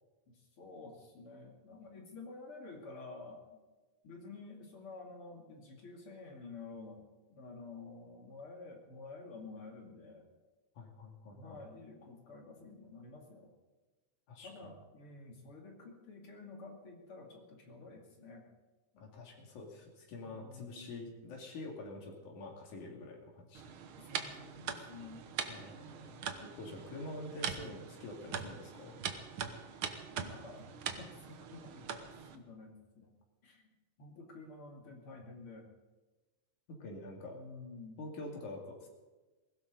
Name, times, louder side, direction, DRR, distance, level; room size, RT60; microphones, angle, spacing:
voice 1, 0.3-3.6 4.0-7.0 7.3-10.2 11.3-13.5 14.4-18.5 18.9-19.1 20.2-21.0 24.0-25.3 26.5-26.9 30.2-32.0 32.3-33.1 33.4-33.6 34.0-35.7 37.3-38.0, left 3 dB, 45° left, 1 dB, 3.1 m, -50 dB
voice 2, 10.8-11.6 14.3-14.7 19.0-23.7 25.4-29.0 36.7-37.4 38.0-38.9, left 2 dB, 85° left, 0 dB, 3.8 m, -47 dB
sound 1, 23.5-32.4, right 7 dB, 60° right, 1.5 m, -42 dB
22.0 x 16.5 x 4.0 m, 1.2 s
omnidirectional pair, 3.4 m